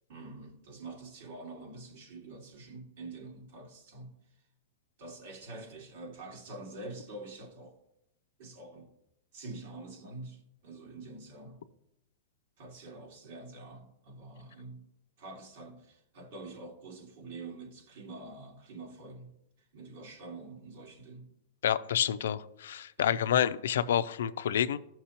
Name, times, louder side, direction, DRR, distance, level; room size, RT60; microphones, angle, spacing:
voice 1, 0.1-4.2 5.0-7.8 8.4-8.9 9.3-11.7 12.6-14.9 15.2-19.3 19.7-21.3 23.0-23.3, right 2 dB, 60° right, 2.0 m, -46 dB
voice 2, 21.6-24.8, left 9 dB, 85° left, 0.5 m, -28 dB
14.5 x 6.0 x 2.9 m
supercardioid pair, 150°, 0 cm